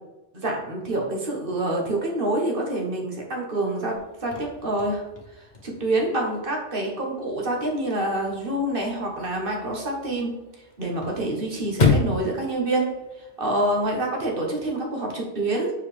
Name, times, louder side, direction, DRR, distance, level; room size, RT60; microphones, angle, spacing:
voice 1, 0.3-3.9 4.2-5.1 5.4-10.3 10.8-12.9 13.2-15.7, right 1 dB, 45° right, 0 dB, 1.5 m, -27 dB
Chirp tweet / Car / Slam, 4.0-13.9, left 4 dB, 40° left, 1.1 m, -31 dB
7.3 x 4.8 x 3.4 m, 1.1 s
omnidirectional pair, 1.3 m